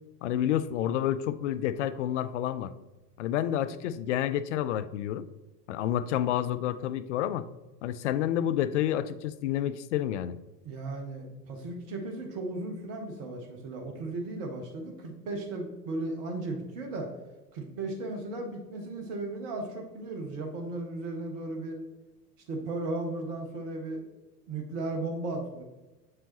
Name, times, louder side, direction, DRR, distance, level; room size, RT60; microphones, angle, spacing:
voice 1, 0.2-2.7 3.2-5.3 5.7-7.5 7.8-10.4, left 11 dB, 50° left, 13 dB, 0.4 m, -29 dB
voice 2, 10.6-17.1 17.5-21.8 22.5-24.0 24.5-25.6, right 2 dB, 15° right, 3 dB, 0.3 m, -36 dB
7.0 x 4.8 x 2.9 m, 1.1 s
figure-of-eight pair, 100°, 49 cm